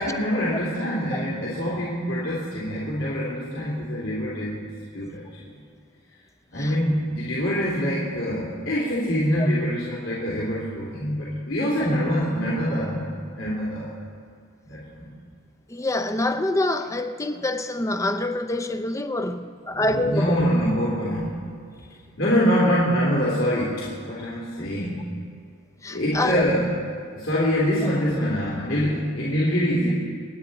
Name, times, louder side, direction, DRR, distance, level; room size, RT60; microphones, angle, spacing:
voice 1, 0.0-4.7 4.9-5.6 6.5-13.9 14.6-15.1 19.7-21.5 22.2-25.1 25.9-26.7 27.1-29.9, equal, 65° left, 3.2 m, -25 dB
voice 2, 15.7-20.4 25.8-26.4, left 1 dB, 15° left, 0.6 m, -26 dB
27.0 x 9.9 x 4.2 m
head